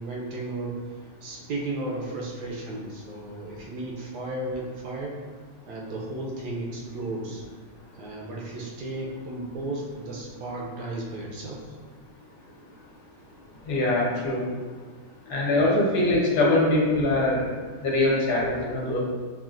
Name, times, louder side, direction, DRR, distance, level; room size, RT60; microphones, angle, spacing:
voice 1, 0.0-5.2 5.7-7.4 7.9-11.8, right 2 dB, 70° right, -2 dB, 0.9 m, -34 dB
voice 2, 13.6-14.4 15.3-17.5 17.8-19.0, left 2 dB, 60° left, -4 dB, 1.4 m, -23 dB
5.8 x 2.4 x 2.4 m, 1.5 s
omnidirectional pair, 2.3 m